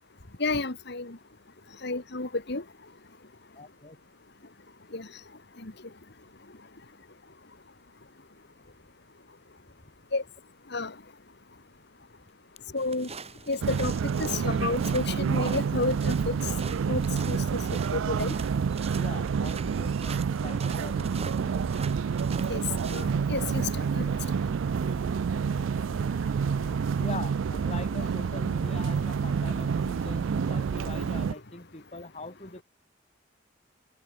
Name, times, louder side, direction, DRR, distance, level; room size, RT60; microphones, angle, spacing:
voice 1, 0.4-1.2 1.8-2.6 4.9-5.1 5.6-5.7 10.1-10.2 10.7-10.9 12.7-13.1 13.5-13.9 14.2-16.4 16.9-17.4 17.9-18.3 22.5-22.6 22.9-24.0, left 3 dB, 60° left, 1.9 m, -30 dB
voice 2, 3.5-4.0 18.9-21.7 27.0-32.6, left 2 dB, 35° left, 4.0 m, -42 dB
sound 1, 12.8-23.0, right 5 dB, 30° right, 2.3 m, -44 dB
sound 2, 13.6-31.3, right 6 dB, 75° right, 0.4 m, -28 dB
head